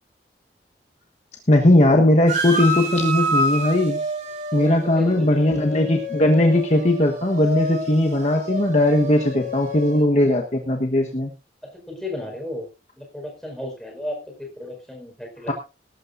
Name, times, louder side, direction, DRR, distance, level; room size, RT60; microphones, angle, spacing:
voice 1, 1.5-4.0 4.5-11.3 15.5-15.6, left 1 dB, 40° left, 2 dB, 1.3 m, -18 dB
sound 1, 2.3-10.0, equal, 45° right, 4.2 m, -28 dB
voice 2, 4.6-5.4 11.7-12.7 13.0-15.5, left 1 dB, 5° left, 0 dB, 5.0 m, -34 dB
19.5 x 12.0 x 2.7 m, 0.29 s
head